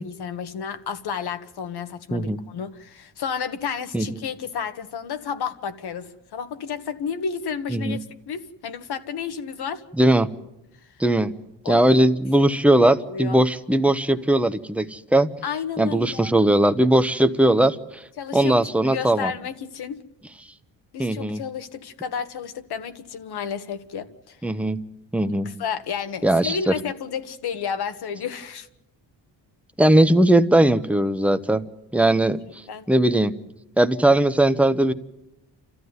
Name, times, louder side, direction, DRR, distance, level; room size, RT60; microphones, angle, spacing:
voice 1, 0.0-9.8 10.7-11.0 11.6-11.8 12.4-13.4 15.4-16.3 18.2-20.0 20.9-24.4 25.5-28.7 32.0-32.2 32.7-32.9, left 7 dB, 65° left, 10 dB, 1.7 m, -32 dB
voice 2, 10.0-10.3 11.0-11.3 11.7-15.3 15.8-18.0 18.3-19.3 21.0-21.4 24.4-24.8 25.1-25.5 26.2-26.7 29.8-31.6 31.9-33.3 33.8-34.9, right 1 dB, 5° right, 9 dB, 0.9 m, -19 dB
29.5 x 14.0 x 9.6 m, 0.90 s
cardioid pair, 130°, 42 cm